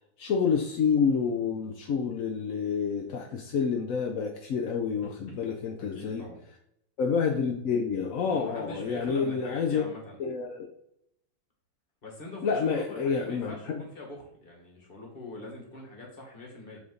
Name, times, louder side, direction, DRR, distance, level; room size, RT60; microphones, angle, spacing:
voice 1, 0.2-6.2 7.0-9.8 10.2-10.7 12.4-13.8, left 6 dB, 65° left, 1 dB, 0.8 m, -28 dB
voice 2, 5.0-5.3 5.8-6.4 8.2-10.2 12.0-16.8, left 2 dB, 30° left, 0 dB, 1.7 m, -43 dB
8.2 x 3.6 x 3.9 m, 0.74 s
omnidirectional pair, 2.1 m